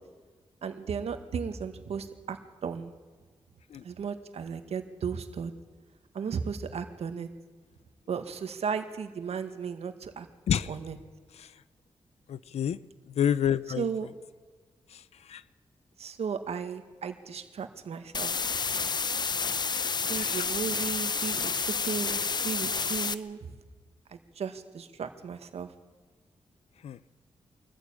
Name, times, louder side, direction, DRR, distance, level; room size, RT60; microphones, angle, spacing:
voice 1, 0.6-2.4 2.6-2.9 3.8-5.5 6.1-7.3 8.1-10.3 10.7-11.0 13.8-14.1 16.0-18.6 20.1-23.4 24.1-25.7, right 6 dB, 80° right, 8 dB, 1.8 m, -35 dB
voice 2, 12.3-12.8 13.2-13.8 15.3-15.4 20.2-20.5 26.8-27.0, left 9 dB, 90° left, 17 dB, 0.6 m, -28 dB
sound 1, 18.1-23.1, left 5 dB, 45° left, 0.8 m, -30 dB
24.0 x 14.5 x 8.9 m, 1.5 s
wide cardioid pair, 100°, 11 cm